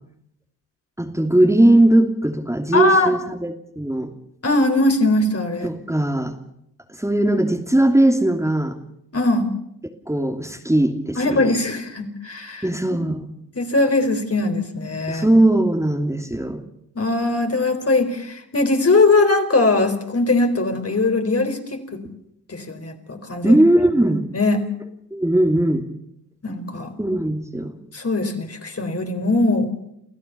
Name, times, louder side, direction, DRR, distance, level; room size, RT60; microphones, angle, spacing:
voice 1, 1.0-4.1 5.6-6.3 7.0-8.8 10.1-11.5 12.6-13.3 15.1-16.6 23.4-24.2 25.1-25.9 27.0-27.7, right 1 dB, 5° right, 3 dB, 2.8 m, -19 dB
voice 2, 2.7-3.1 4.4-5.7 9.1-9.6 11.2-12.7 13.6-15.4 16.9-21.8 22.5-23.6 24.3-24.6 26.4-26.9 27.9-29.7, left 2 dB, 35° left, 5 dB, 4.3 m, -20 dB
29.5 x 14.5 x 7.0 m, 0.76 s
supercardioid pair, 45°, 40 cm